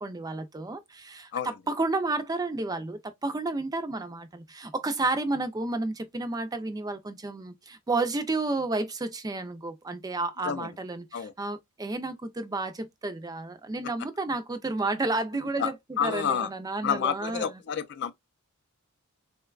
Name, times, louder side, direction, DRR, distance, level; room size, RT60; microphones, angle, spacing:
voice 1, 0.0-17.5, right 2 dB, 15° right, 0.4 m, -31 dB
voice 2, 15.6-16.5 16.8-18.1, left 7 dB, 50° left, 0.4 m, -29 dB
3.8 x 2.2 x 2.3 m
head